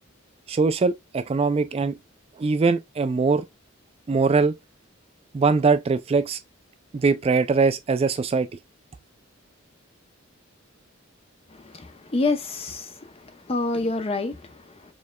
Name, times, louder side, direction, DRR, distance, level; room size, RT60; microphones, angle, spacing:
voice 1, 0.5-2.0 2.4-3.4 4.1-4.5 5.3-6.4 6.9-8.5, right 4 dB, 30° right, 0.3 m, -21 dB
voice 2, 11.6-13.1 13.5-14.7, left 2 dB, 30° left, 0.6 m, -27 dB
4.6 x 3.3 x 2.2 m
head